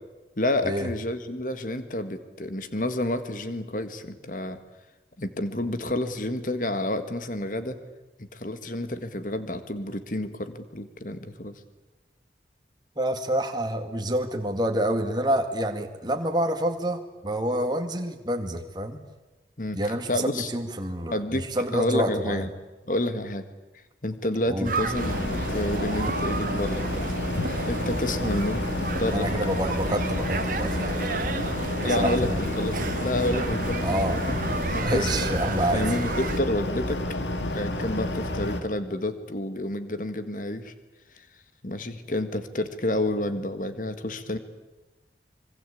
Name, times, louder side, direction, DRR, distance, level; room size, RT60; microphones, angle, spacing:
voice 1, 0.4-4.6 5.2-7.8 8.3-11.5 19.6-19.8 20.1-20.5 21.1-22.5 22.8-23.5 24.0-27.1 27.7-29.3 31.8-34.4 34.7-35.4 35.7-37.0 37.5-40.7 41.1-41.3 41.6-44.4, left 1 dB, 50° left, 10 dB, 1.8 m, -29 dB
voice 2, 13.0-19.0 19.7-22.4 24.5-24.7 29.1-31.1 31.8-32.4 33.8-34.2 34.8-35.8, right 1 dB, 25° right, 5 dB, 2.1 m, -28 dB
sound 1, 24.6-36.4, right 2 dB, 50° right, 1.4 m, -31 dB
sound 2, 25.0-38.6, left 1 dB, 90° left, 2.2 m, -30 dB
25.5 x 23.5 x 8.5 m, 1.1 s
head